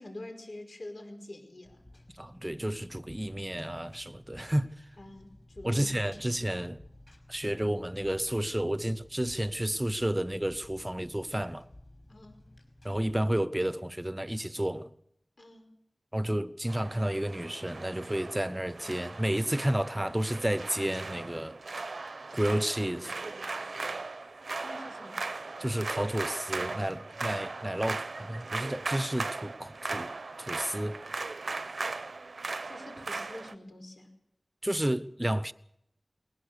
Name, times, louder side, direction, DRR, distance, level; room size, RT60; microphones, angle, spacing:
voice 1, 0.0-1.8 5.0-5.9 12.1-12.4 15.4-15.7 24.6-25.2 32.6-34.1, left 1 dB, 70° left, 5.2 m, -46 dB
Engine, 1.6-13.2, left 1 dB, 45° left, 5.6 m, -55 dB
voice 2, 2.1-4.7 5.6-6.8 7.3-11.7 12.8-14.9 16.1-21.6 22.3-23.1 25.6-31.0 34.6-35.5, right 1 dB, 15° right, 0.9 m, -31 dB
sound 1, 16.7-33.5, right 3 dB, 85° right, 0.9 m, -38 dB
21.0 x 20.0 x 6.9 m
wide cardioid pair, 60°, 0 cm